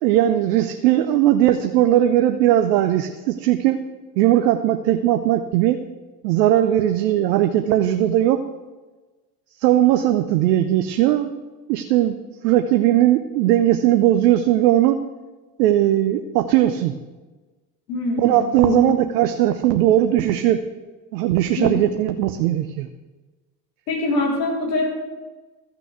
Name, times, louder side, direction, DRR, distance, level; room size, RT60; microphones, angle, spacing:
voice 1, 0.0-3.8 4.2-5.8 6.2-8.4 9.6-11.3 11.7-12.1 12.4-15.0 15.6-16.9 18.2-20.6 21.1-22.9, right 12 dB, 75° right, 7 dB, 0.9 m, -18 dB
voice 2, 17.9-19.0 21.6-21.7 23.9-24.9, left 2 dB, 75° left, -2 dB, 4.2 m, -23 dB
14.0 x 6.1 x 8.1 m, 1.2 s
hypercardioid pair, 65°, 49 cm